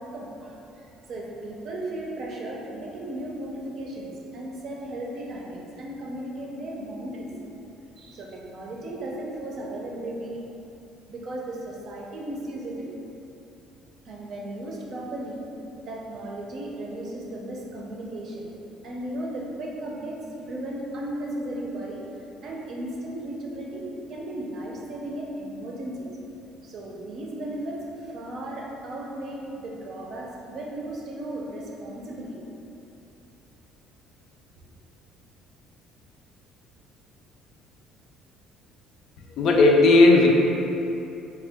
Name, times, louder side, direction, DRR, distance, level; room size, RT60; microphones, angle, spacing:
voice 1, 0.0-7.3 8.0-10.4 11.1-12.9 14.0-15.4 15.9-18.5 18.8-22.1 22.4-26.1 26.6-32.4, right 1 dB, 50° right, -2 dB, 0.5 m, -35 dB
voice 2, 39.4-40.3, left 2 dB, 55° left, 0 dB, 0.4 m, -15 dB
3.6 x 2.2 x 3.5 m, 2.9 s
cardioid pair, 140°, 0 cm